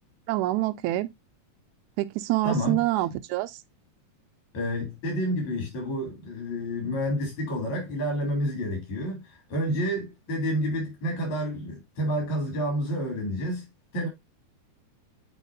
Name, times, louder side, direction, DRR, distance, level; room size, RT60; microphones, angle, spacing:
voice 1, 0.3-1.1 2.0-3.6, right 16 dB, 85° right, 1.9 m, -26 dB
voice 2, 2.4-2.8 4.5-13.7 13.9-14.1, equal, 70° left, 4.5 m, -29 dB
9.1 x 4.4 x 2.6 m
omnidirectional pair, 3.4 m